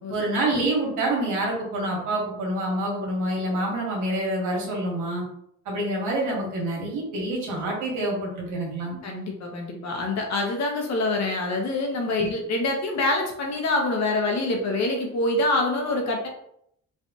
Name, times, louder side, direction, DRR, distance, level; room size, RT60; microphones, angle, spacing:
voice 1, 0.1-5.2 5.6-9.0, right 1 dB, 85° right, -2 dB, 1.3 m, -27 dB
voice 2, 9.0-16.3, left 2 dB, 65° left, 2 dB, 0.9 m, -25 dB
3.3 x 2.4 x 2.8 m, 0.72 s
cardioid pair, 90°, 30 cm